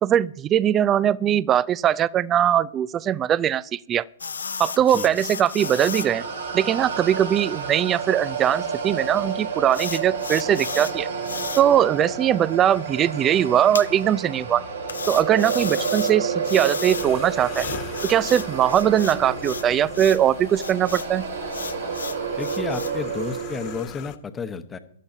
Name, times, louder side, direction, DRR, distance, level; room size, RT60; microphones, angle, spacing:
voice 1, 0.0-4.0 4.6-6.2 6.5-11.1 11.6-14.6 15.1-17.7 18.0-21.3, right 10 dB, 25° right, 23 dB, 0.4 m, -21 dB
sound 1, 4.2-6.1 6.5-6.6 6.9-7.1 7.6-7.7 9.7-10.9 11.2-11.6 13.7-13.9 14.9-16.1 16.4-17.1 17.5-19.6 19.9-20.2 20.5-21.1 21.5-22.9, left 5 dB, 80° left, 0.8 m, -34 dB
sound 2, 5.6-23.8, right 5 dB, 80° right, 3.7 m, -30 dB
sound 3, 16.9-24.2, left 9 dB, 35° left, 1.2 m, -42 dB
voice 2, 22.4-24.8, left 6 dB, 15° left, 9 dB, 1.0 m, -32 dB
19.0 x 13.0 x 2.7 m, 0.67 s
figure-of-eight pair, 120°, 0 cm